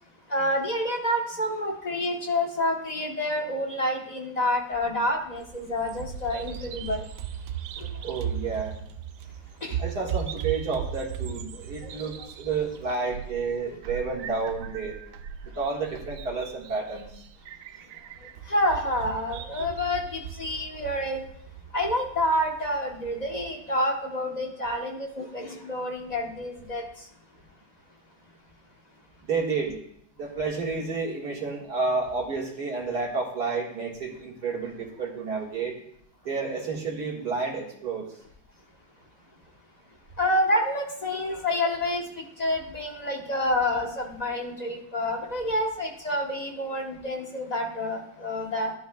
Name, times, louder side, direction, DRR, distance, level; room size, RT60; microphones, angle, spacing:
voice 1, 0.3-7.0 7.8-7.9 9.6-9.8 11.8-11.9 12.2-12.3 18.5-21.2 21.7-26.8 40.2-48.7, left 1 dB, 25° left, 1 dB, 1.0 m, -28 dB
Bird vocalization bird call bird song, 5.4-23.5, right 8 dB, 75° right, 1.1 m, -38 dB
voice 2, 8.0-8.8 9.8-14.9 15.6-17.1 29.3-29.8 30.2-35.7 36.3-38.1, right 4 dB, 55° right, -2 dB, 2.3 m, -30 dB
13.5 x 11.0 x 2.3 m, 0.70 s
omnidirectional pair, 2.0 m